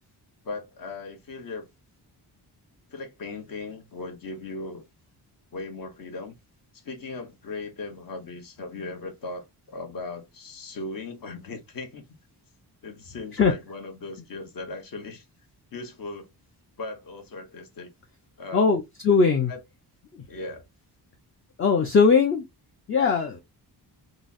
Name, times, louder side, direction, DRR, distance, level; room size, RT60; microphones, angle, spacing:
voice 1, 0.4-1.7 2.9-4.8 5.5-6.4 6.7-12.0 12.8-15.2 15.7-16.3 16.8-17.9 18.4-18.7 19.5-19.6 20.3-20.6, left 3 dB, 55° left, 1.0 m, -38 dB
voice 2, 18.5-19.5 21.6-22.4 22.9-23.4, left 5 dB, 30° left, 0.5 m, -20 dB
3.9 x 2.0 x 2.4 m
wide cardioid pair, 140°, 41 cm